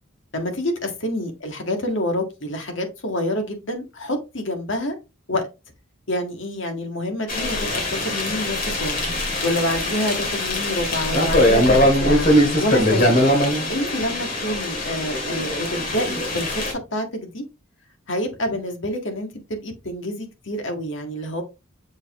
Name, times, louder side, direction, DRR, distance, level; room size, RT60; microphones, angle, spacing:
voice 1, 0.3-5.0 5.3-5.5 6.1-9.0 9.4-12.3 12.6-13.2 13.7-16.6 16.9-17.4 18.1-21.4, left 1 dB, 60° left, 4 dB, 1.7 m, -27 dB
sound 1, 7.3-16.7, left 1 dB, 45° left, 2.2 m, -21 dB
6.9 x 4.9 x 3.0 m, 0.26 s
head